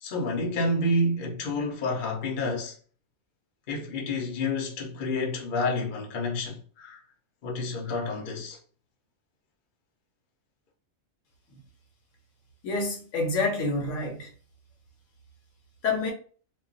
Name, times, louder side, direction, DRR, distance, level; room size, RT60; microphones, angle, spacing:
voice 1, 0.0-2.7 3.7-7.0 7.4-8.6, left 2 dB, 45° left, 0.8 m, -29 dB
voice 2, 12.6-14.3 15.8-16.1, left 3 dB, 70° left, 1.0 m, -27 dB
2.3 x 2.2 x 3.8 m
omnidirectional pair, 1.4 m